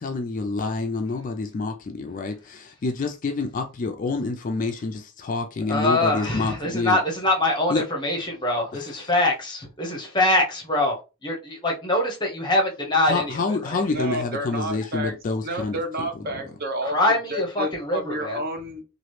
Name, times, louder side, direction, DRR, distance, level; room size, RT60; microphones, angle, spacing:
voice 1, 0.0-7.0 7.7-7.9 8.7-9.1 13.0-16.1, left 3 dB, 35° left, 0.3 m, -28 dB
voice 2, 5.7-11.0 11.2-13.8 16.8-18.4, left 1 dB, 20° left, 0.8 m, -24 dB
voice 3, 13.9-15.2 15.4-17.0 17.3-18.8, right 1 dB, 45° right, 0.7 m, -30 dB
2.9 x 2.4 x 3.1 m
head